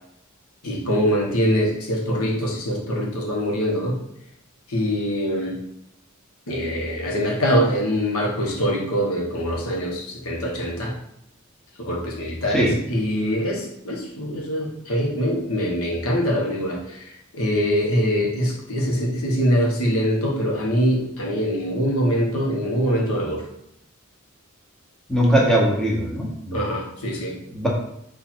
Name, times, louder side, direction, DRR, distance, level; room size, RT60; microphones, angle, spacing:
voice 1, 0.6-4.0 4.7-5.6 6.5-11.0 11.8-23.4 26.5-27.4, equal, 85° left, -2 dB, 1.2 m, -23 dB
voice 2, 25.1-26.6 27.5-27.7, equal, 5° left, -3 dB, 1.0 m, -20 dB
4.5 x 2.7 x 4.3 m, 0.77 s
head